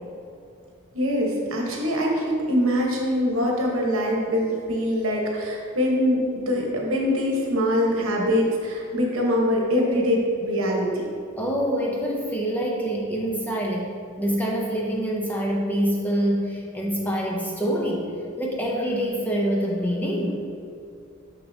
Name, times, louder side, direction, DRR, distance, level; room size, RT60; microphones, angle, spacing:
voice 1, 0.9-11.1, equal, 70° right, -1 dB, 1.1 m, -23 dB
voice 2, 11.4-18.1 18.4-20.4, equal, 10° left, -2 dB, 0.5 m, -26 dB
6.5 x 6.0 x 2.7 m, 2.5 s
head